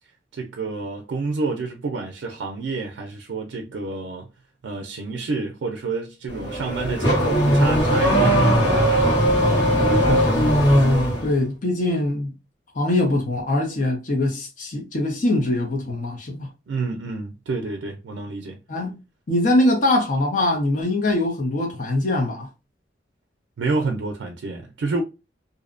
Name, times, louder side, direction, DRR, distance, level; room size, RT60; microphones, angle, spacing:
voice 1, 0.3-4.3 4.6-9.0 16.7-18.6 23.6-25.0, right 3 dB, 80° right, 0.4 m, -29 dB
Car / Accelerating revving vroom, 6.3-11.3, equal, 75° left, 1.2 m, -18 dB
voice 2, 10.1-10.4 11.2-12.3 12.7-16.5 18.7-19.0 19.3-22.5, left 1 dB, 45° left, 0.6 m, -22 dB
2.6 x 2.0 x 2.4 m
head